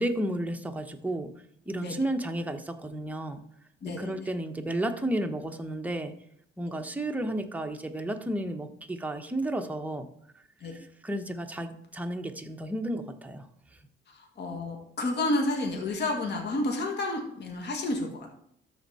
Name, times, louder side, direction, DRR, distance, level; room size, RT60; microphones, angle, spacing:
voice 1, 0.0-1.3 1.6-3.4 4.0-6.1 6.6-10.1 10.3-13.8, right 1 dB, 5° right, 5 dB, 1.0 m, -32 dB
voice 2, 3.8-4.2 6.7-6.8 10.6-10.7 14.1-18.3, left 2 dB, 60° left, 1 dB, 2.0 m, -30 dB
13.5 x 4.5 x 4.2 m, 0.71 s
cardioid pair, 90°, 20 cm